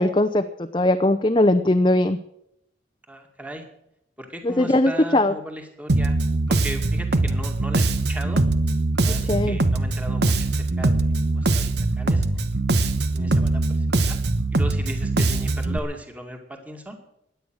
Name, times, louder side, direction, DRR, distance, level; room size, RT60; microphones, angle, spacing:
voice 1, 0.0-2.2 4.4-5.3 9.3-9.6, left 1 dB, 25° left, 6 dB, 0.7 m, -20 dB
voice 2, 3.1-3.6 4.2-6.2 6.5-8.5 9.0-12.2 13.1-14.2 14.5-17.0, right 1 dB, 10° right, 3 dB, 2.3 m, -37 dB
Bass guitar, 5.9-15.8, right 2 dB, 60° right, 1.1 m, -22 dB
17.0 x 11.0 x 6.3 m, 0.77 s
head